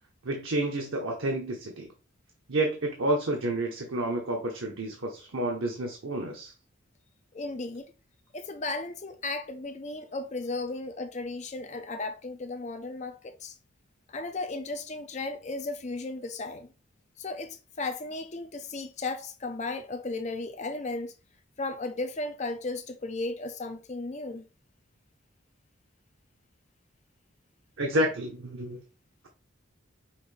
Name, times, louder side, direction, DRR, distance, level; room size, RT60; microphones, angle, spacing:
voice 1, 0.2-1.9 2.5-6.5 27.8-28.8, right 1 dB, 85° right, 0.9 m, -30 dB
voice 2, 7.3-7.9 8.3-13.6 14.1-16.7 17.2-21.1 21.6-24.5, left 3 dB, 35° left, 0.5 m, -35 dB
5.7 x 2.6 x 3.2 m
head